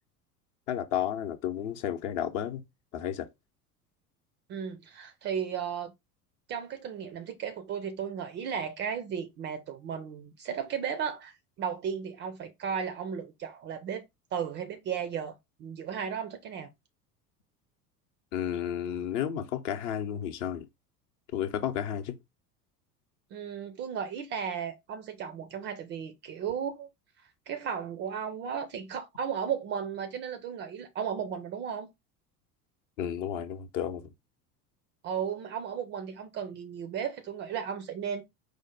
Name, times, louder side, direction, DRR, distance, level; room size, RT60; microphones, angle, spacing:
voice 1, 0.7-2.6 2.9-3.3 18.3-20.7 21.3-22.2 33.0-34.0, left 10 dB, 50° left, 0.8 m, -32 dB
voice 2, 4.5-5.9 6.5-16.7 23.3-26.9 27.2-31.9 35.0-38.2, right 7 dB, 25° right, 0.4 m, -35 dB
4.9 x 2.1 x 4.4 m
figure-of-eight pair, 75°, 47 cm